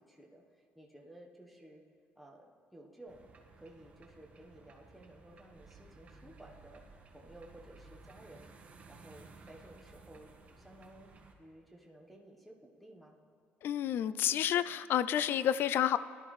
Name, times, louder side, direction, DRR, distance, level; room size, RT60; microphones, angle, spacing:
voice 1, 0.0-1.8 2.1-3.3 3.6-10.3 10.6-11.1 11.4-13.2, right 1 dB, ahead, -2 dB, 1.1 m, -55 dB
sound 1, 3.1-11.3, right 3 dB, 35° right, 1.3 m, -57 dB
voice 2, 13.6-16.0, left 10 dB, 60° left, 15 dB, 0.4 m, -30 dB
18.0 x 11.5 x 3.2 m, 2.2 s
cardioid pair, 120°, 4 cm